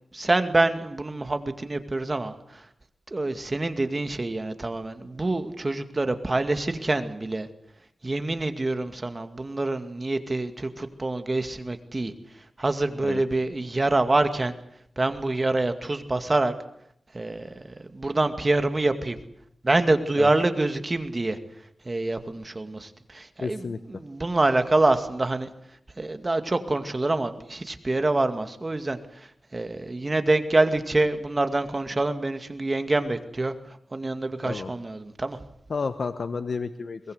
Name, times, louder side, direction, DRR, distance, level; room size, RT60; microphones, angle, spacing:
voice 1, 0.1-2.4 3.1-7.5 8.0-12.1 12.6-14.5 15.0-16.5 17.1-19.2 19.6-21.4 21.9-25.5 26.0-29.0 29.5-33.5 33.9-35.4, right 2 dB, 35° right, 8 dB, 2.3 m, -26 dB
voice 2, 23.4-23.8 34.5-34.7 35.7-37.0, left 4 dB, 70° left, 10 dB, 1.1 m, -30 dB
23.0 x 21.0 x 8.1 m, 0.71 s
wide cardioid pair, 80°, 0 cm